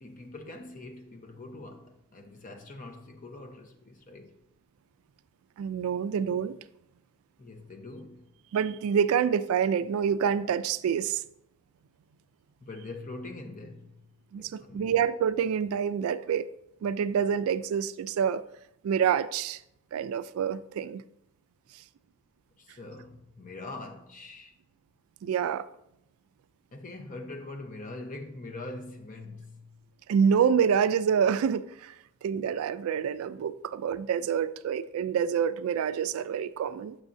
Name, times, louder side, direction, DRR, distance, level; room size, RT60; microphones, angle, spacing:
voice 1, 0.0-4.4 7.4-8.3 12.6-13.9 14.4-14.9 22.6-24.5 26.7-29.8, left 2 dB, 40° left, 0.7 m, -43 dB
voice 2, 5.6-6.6 8.5-11.2 14.3-16.5 16.8-18.4 18.8-19.6 19.9-21.0 25.2-25.7 30.1-31.9 32.2-37.0, right 7 dB, 75° right, 0.3 m, -27 dB
7.2 x 6.2 x 2.6 m
head